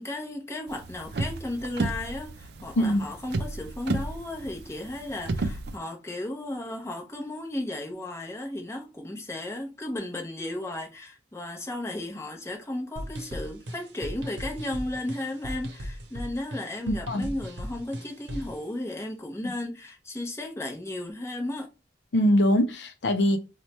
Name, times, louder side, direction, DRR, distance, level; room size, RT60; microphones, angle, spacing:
voice 1, 0.0-21.7, left 1 dB, 15° left, 0.7 m, -34 dB
sound 1, 0.7-5.8, right 2 dB, 65° right, 0.4 m, -32 dB
sound 2, 13.0-18.6, equal, 80° right, 0.7 m, -38 dB
voice 2, 16.9-17.3 22.1-23.4, equal, 75° left, 0.5 m, -23 dB
3.0 x 2.2 x 4.1 m
head